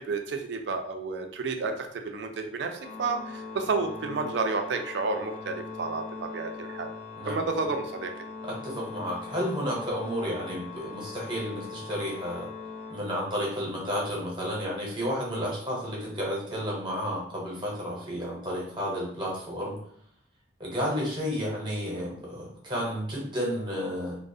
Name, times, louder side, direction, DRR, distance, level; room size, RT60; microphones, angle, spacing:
voice 1, 0.0-6.9 7.3-8.1, right 4 dB, 65° right, 5 dB, 0.4 m, -31 dB
Organ, 2.7-13.6, left 5 dB, 40° left, 0.4 m, -41 dB
voice 2, 7.2-7.5 8.4-12.5 12.9-19.8 20.6-24.2, equal, 25° right, -4 dB, 0.7 m, -32 dB
2.4 x 2.0 x 2.6 m, 0.65 s
head